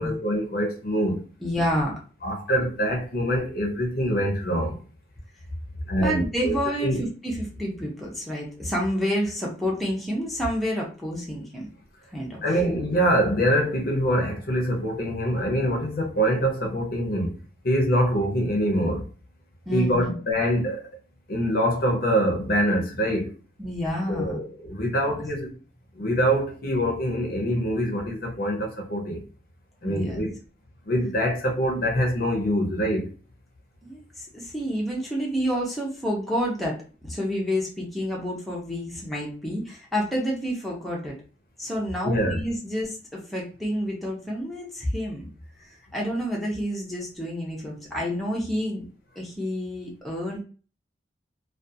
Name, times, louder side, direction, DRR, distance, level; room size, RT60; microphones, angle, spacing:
voice 1, 0.0-1.2 2.2-4.8 5.9-7.0 12.4-17.4 17.6-19.1 19.7-20.8 21.3-23.3 24.1-25.5 25.9-29.2 29.8-30.4 30.9-33.1 42.0-42.4, equal, 50° left, 0.6 m, -24 dB
voice 2, 1.4-1.9 6.0-11.7 12.1-12.4 19.7-20.1 23.6-24.4 25.0-25.2 29.8-30.2 33.8-41.2 41.6-45.3 45.6-48.8 49.2-50.4, equal, ahead, 0.5 m, -29 dB
2.4 x 2.3 x 2.6 m
head